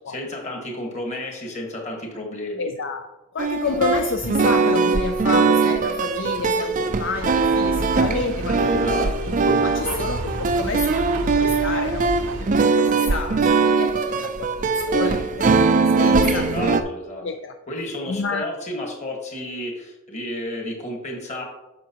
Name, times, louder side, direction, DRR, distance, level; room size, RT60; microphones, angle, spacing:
voice 1, 0.0-2.7 8.6-9.3 16.2-17.3 17.7-21.4, left 1 dB, 30° left, 1 dB, 1.6 m, -31 dB
voice 2, 2.6-3.1 3.3-9.1 9.5-16.5 17.2-17.5 18.1-18.5, left 4 dB, 55° left, 5 dB, 0.4 m, -30 dB
sound 1, 3.4-16.8, right 4 dB, 35° right, 0.4 m, -21 dB
sound 2, 7.1-12.4, right 2 dB, 75° right, 0.7 m, -31 dB
9.0 x 6.5 x 2.9 m, 1.0 s
head